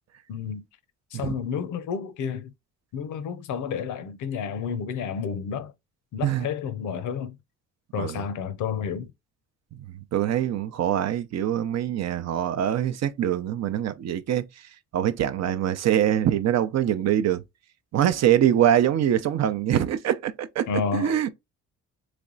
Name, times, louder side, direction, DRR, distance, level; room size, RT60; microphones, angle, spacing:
voice 1, 0.3-0.6 1.1-2.5 2.9-5.7 6.1-7.4 7.9-9.1 20.7-21.2, left 6 dB, 80° left, 0.7 m, -30 dB
voice 2, 10.1-14.4 14.9-17.4 17.9-21.3, right 10 dB, 60° right, 0.6 m, -24 dB
3.4 x 3.2 x 3.8 m
cardioid pair, 90°, 30 cm